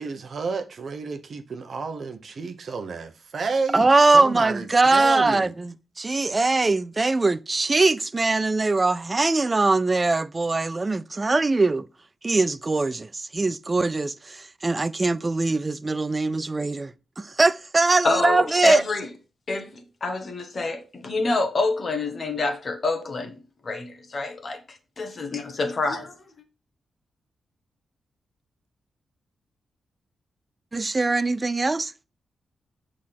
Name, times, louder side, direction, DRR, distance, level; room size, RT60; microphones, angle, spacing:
voice 1, 0.0-5.5, right 4 dB, 45° right, 0.9 m, -31 dB
voice 2, 3.7-11.9 12.2-18.8 30.7-31.9, right 3 dB, 20° right, 0.4 m, -22 dB
voice 3, 18.0-19.0 19.5-23.3 23.6-26.2, left 3 dB, 35° left, 1.2 m, -27 dB
8.4 x 3.7 x 5.9 m
wide cardioid pair, 175°, 0 cm